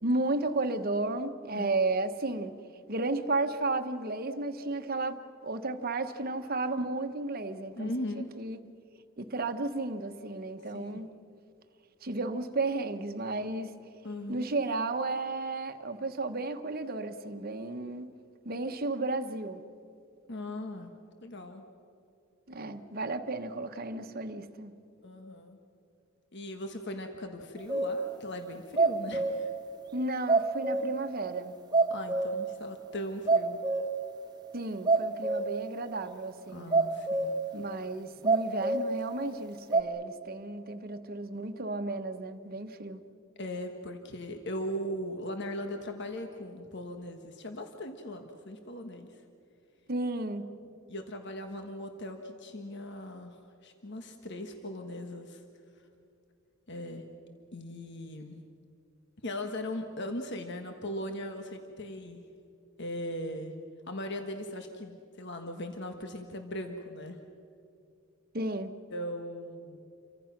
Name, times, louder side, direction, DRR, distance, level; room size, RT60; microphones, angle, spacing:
voice 1, 0.0-2.5 2.9-8.6 9.2-11.1 12.0-13.7 14.3-18.1 18.4-19.6 22.5-24.7 29.9-31.6 34.5-36.8 37.5-43.0 49.9-50.5 68.3-68.7, right 2 dB, 45° right, 7 dB, 1.2 m, -33 dB
voice 2, 7.8-8.3 10.6-11.1 14.0-14.5 20.3-20.9 21.2-21.7 25.0-25.6 26.3-29.5 31.9-33.6 36.5-37.6 43.3-49.2 50.9-55.4 55.7-55.9 56.7-57.0 57.5-58.4 59.2-62.2 62.8-63.5 63.9-67.2 68.9-69.8, left 1 dB, 55° left, 5 dB, 1.4 m, -39 dB
sound 1, 27.7-28.0 28.5-29.6 29.9-30.0 30.3-31.1 31.4-31.5 31.7-32.5 32.9-33.0 33.3-34.1 34.4-34.5 34.8-35.7 36.0-36.1 36.7-37.5 38.2-38.9 39.7-39.8, right 3 dB, 20° right, 1.3 m, -26 dB
29.0 x 24.5 x 6.0 m, 2.6 s
head